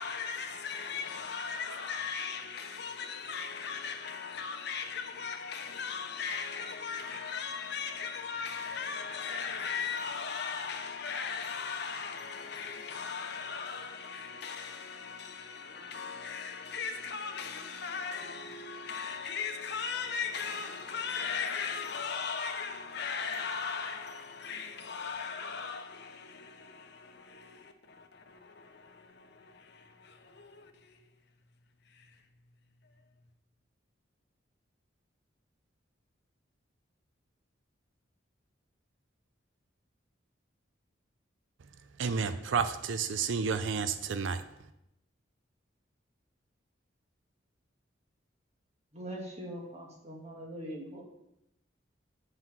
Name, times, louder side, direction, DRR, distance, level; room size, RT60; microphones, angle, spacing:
voice 1, 0.0-31.0 31.9-32.1, left 5 dB, 60° left, 0.9 m, -38 dB
voice 2, 42.0-44.4, right 5 dB, 75° right, 0.5 m, -31 dB
voice 3, 48.9-51.0, right 1 dB, 35° right, 1.7 m, -42 dB
7.9 x 5.5 x 6.0 m
head